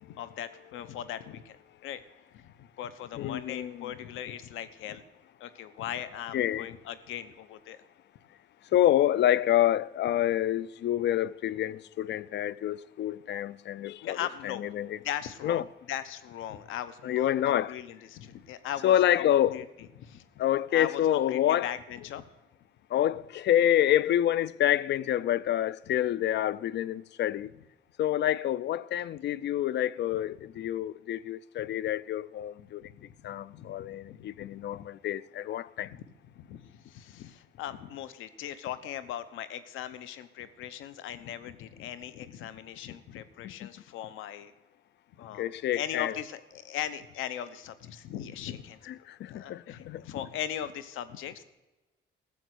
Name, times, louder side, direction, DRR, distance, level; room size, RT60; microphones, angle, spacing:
voice 1, 0.0-1.6 1.8-2.0 2.3-5.0 5.4-7.8 14.0-14.6 15.0-15.6 15.9-19.6 20.0-20.4 20.7-22.2 25.9-26.0 31.6-31.7 32.8-33.1 33.5-34.9 35.8-36.0 36.4-44.5 45.2-48.8 49.2-51.4, left 10 dB, 90° left, 0.9 m, -39 dB
voice 2, 3.2-3.9 6.3-6.7 8.7-14.2 14.4-15.0 15.4-15.6 17.0-17.7 18.8-19.7 20.4-21.7 22.9-27.5 28.0-32.8 33.2-35.9 43.4-43.7 45.4-46.2 48.9-50.0, left 12 dB, 60° left, 0.4 m, -27 dB
14.0 x 7.2 x 8.1 m
cardioid pair, 90°, 20 cm